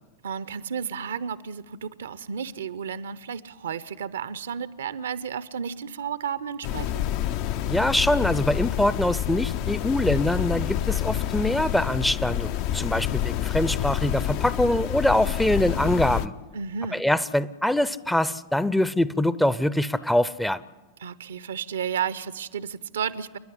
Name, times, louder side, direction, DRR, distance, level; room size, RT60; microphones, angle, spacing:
voice 1, 0.2-7.4 16.5-17.0 21.0-23.4, right 7 dB, 65° right, 17 dB, 0.7 m, -32 dB
sound 1, 6.6-16.3, left 11 dB, 45° left, 0.6 m, -28 dB
voice 2, 7.6-16.3 16.9-20.6, left 1 dB, 5° left, 17 dB, 0.6 m, -24 dB
29.0 x 10.5 x 9.9 m, 1.2 s
figure-of-eight pair, 90°, 0 cm